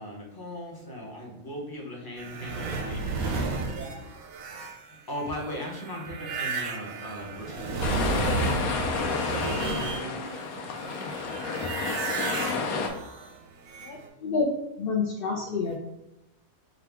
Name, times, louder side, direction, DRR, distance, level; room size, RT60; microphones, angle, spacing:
voice 1, 0.0-3.7 4.9-8.4, left 1 dB, 25° left, -2 dB, 0.6 m, -38 dB
sound 1, 2.2-10.4 10.7-14.1, right 4 dB, 85° right, 1.1 m, -33 dB
sound 2, 7.8-12.9, left 4 dB, 90° left, 1.1 m, -30 dB
voice 2, 9.3-11.7, right 4 dB, 60° right, 3 dB, 0.6 m, -45 dB
voice 3, 13.8-14.5 14.8-15.8, left 5 dB, 70° left, -2 dB, 0.5 m, -28 dB
5.0 x 2.3 x 3.4 m, 0.90 s
omnidirectional pair, 1.5 m